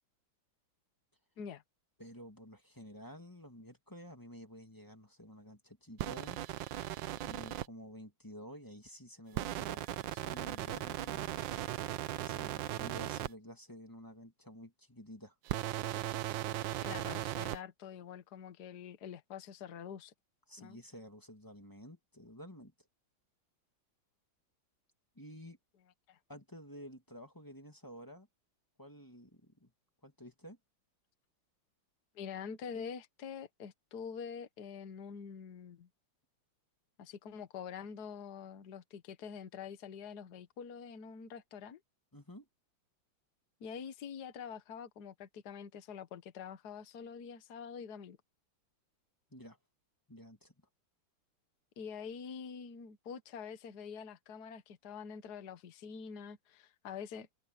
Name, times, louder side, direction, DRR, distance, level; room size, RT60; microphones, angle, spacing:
voice 1, 2.0-6.4 7.2-11.5 12.2-15.3 20.5-22.7 25.2-25.6 26.3-28.3 28.8-29.7 30.0-30.6 42.1-42.5 49.3-49.6 50.1-50.5, equal, 10° left, 2.4 m, -51 dB
sound 1, 6.0-7.7 9.3-13.3 15.4-17.6, right 14 dB, 75° right, 1.4 m, -37 dB
voice 2, 16.8-20.1 20.6-20.8 26.1-26.2 32.1-35.9 37.0-41.8 43.6-48.2 51.8-57.3, left 7 dB, 55° left, 1.7 m, -46 dB
open air
omnidirectional pair, 2.1 m